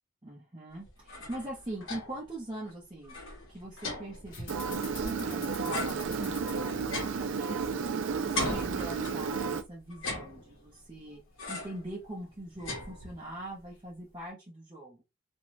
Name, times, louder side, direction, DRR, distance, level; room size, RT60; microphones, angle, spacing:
voice 1, 0.2-3.2 3.5-7.6 8.2-11.2 11.5-15.0, right 1 dB, 20° right, -5 dB, 0.7 m, -42 dB
sound 1, 0.9-2.3 2.7-2.8 3.0-5.3 5.7-7.9 8.3-9.4 9.9-10.8 11.4-11.9 12.2-13.4, left 2 dB, 65° left, 1.0 m, -39 dB
sound 2, 4.2-14.3, left 3 dB, 35° left, 1.1 m, -51 dB
Engine, 4.5-9.6, right 5 dB, 60° right, 0.4 m, -32 dB
2.5 x 2.3 x 3.1 m, 0.24 s
head